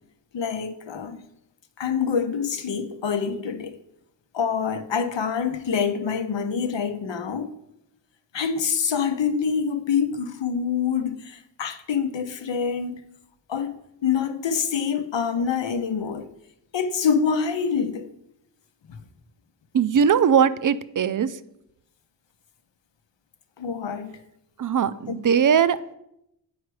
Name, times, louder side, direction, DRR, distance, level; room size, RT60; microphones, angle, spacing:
voice 1, 0.3-1.2 1.8-3.8 4.3-7.5 8.3-13.0 13.5-13.7 14.0-16.3 16.7-18.1 18.9-19.0 23.6-24.1 25.1-25.2, left 6 dB, 75° left, 0.8 m, -26 dB
voice 2, 19.7-21.4 24.6-25.9, right 7 dB, 45° right, 0.5 m, -20 dB
8.0 x 4.7 x 4.8 m
cardioid pair, 60°, 44 cm